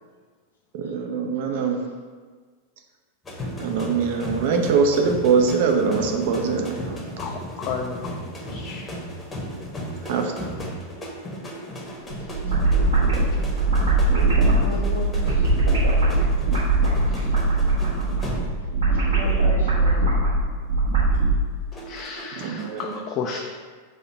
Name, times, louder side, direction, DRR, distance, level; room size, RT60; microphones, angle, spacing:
voice 1, 0.7-1.8 3.6-7.0 10.0-10.3 22.3-23.0 23.3-23.4, right 5 dB, 50° right, 4 dB, 0.5 m, -23 dB
sound 1, 3.2-18.8 19.1-19.5 21.7-23.0, equal, 15° left, 0.8 m, -35 dB
voice 2, 7.2-8.3 8.5-8.9 14.5-14.7 17.1-17.2 21.9-23.4, left 6 dB, 35° left, 1 dB, 0.3 m, -33 dB
sound 2, 12.1-21.3, right 3 dB, 65° right, 1.3 m, -20 dB
voice 3, 12.2-12.6 14.6-15.6 18.8-20.0, left 2 dB, 75° left, -5 dB, 0.8 m, -35 dB
4.3 x 2.8 x 4.5 m, 1.5 s
figure-of-eight pair, 90°, 0 cm